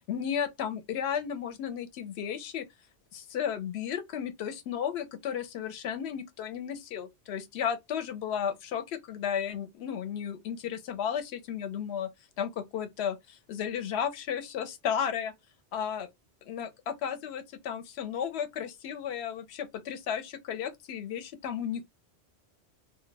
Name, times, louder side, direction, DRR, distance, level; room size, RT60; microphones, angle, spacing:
voice 1, 0.1-2.6 3.1-12.1 12.4-15.3 15.7-16.1 16.5-21.9, left 8 dB, 70° left, 0.8 m, -34 dB
2.2 x 2.1 x 3.2 m
omnidirectional pair, 1.2 m